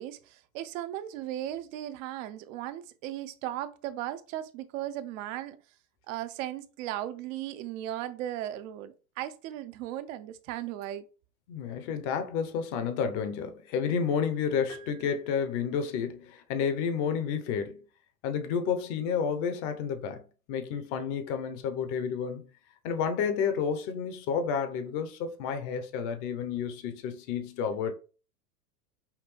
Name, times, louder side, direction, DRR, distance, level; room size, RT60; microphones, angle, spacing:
voice 1, 0.0-5.6 6.1-11.1, right 13 dB, 50° right, 0.6 m, -37 dB
voice 2, 11.5-17.8 18.2-20.2 20.5-22.5 22.8-27.9, left 6 dB, 45° left, 0.9 m, -30 dB
sound 1, 14.7-16.0, right 7 dB, 5° left, 0.5 m, -53 dB
5.8 x 2.2 x 3.2 m
hypercardioid pair, 100°, 49 cm